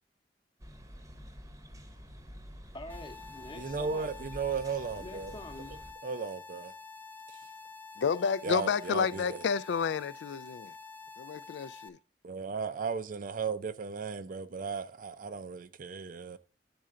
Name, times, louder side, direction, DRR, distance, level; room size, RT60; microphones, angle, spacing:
sound 1, 0.6-5.9, equal, 20° right, 0.9 m, -48 dB
voice 1, 2.7-4.1 5.0-5.7, left 1 dB, 30° left, 0.9 m, -46 dB
sound 2, 2.9-11.9, left 4 dB, 10° left, 0.5 m, -48 dB
voice 2, 3.5-5.4 6.0-6.7 8.4-9.4 12.2-16.4, right 5 dB, 50° right, 0.5 m, -35 dB
voice 3, 8.0-10.7 11.2-12.0, left 6 dB, 80° left, 0.3 m, -30 dB
10.5 x 4.4 x 3.7 m
head